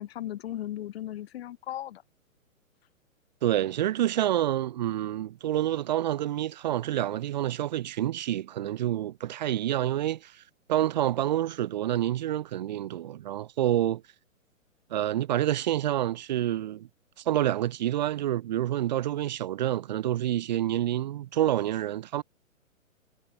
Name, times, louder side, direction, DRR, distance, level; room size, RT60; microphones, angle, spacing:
voice 1, 0.0-2.0, left 12 dB, 45° left, 1.4 m, -36 dB
voice 2, 3.4-10.4 10.7-14.0 14.9-16.9 17.3-22.2, right 12 dB, 35° right, 0.5 m, -28 dB
figure-of-eight pair, 125°, 41 cm